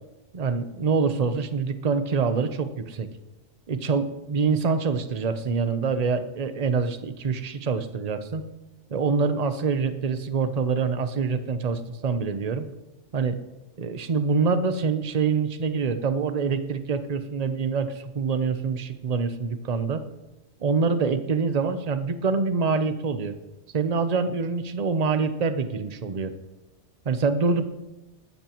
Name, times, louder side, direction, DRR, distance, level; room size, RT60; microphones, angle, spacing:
voice 1, 0.3-3.1 3.7-8.4 8.9-12.6 13.1-13.4 13.8-20.0 20.6-23.3 23.7-26.3 27.0-27.7, right 5 dB, 35° right, 9 dB, 0.8 m, -25 dB
19.5 x 15.0 x 3.0 m, 1.0 s
omnidirectional pair, 1.2 m